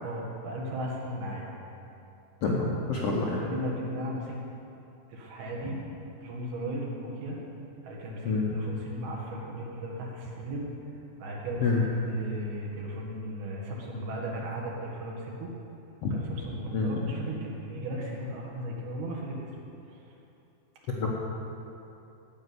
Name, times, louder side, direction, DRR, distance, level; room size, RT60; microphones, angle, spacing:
voice 1, 0.0-1.5 2.5-2.6 3.3-4.4 5.1-5.8 6.2-7.4 7.8-10.7 11.2-11.8 12.0-15.5 16.1-19.5, right 1 dB, 75° right, -3 dB, 3.6 m, -36 dB
voice 2, 2.4-3.4 8.2-8.5 11.6-11.8 16.0-16.2 16.7-16.9 20.9-21.1, left 3 dB, 70° left, -4 dB, 1.4 m, -27 dB
15.0 x 5.5 x 9.5 m, 2.8 s
omnidirectional pair, 4.5 m